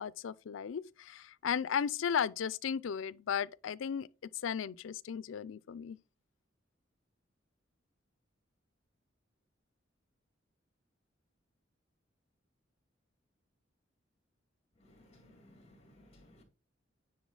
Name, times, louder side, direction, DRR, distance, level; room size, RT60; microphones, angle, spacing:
voice 1, 0.0-4.1 4.4-6.0, left 7 dB, 85° left, 0.4 m, -35 dB
voice 2, 14.8-16.4, left 1 dB, 35° left, 2.4 m, -60 dB
9.4 x 4.0 x 3.9 m
head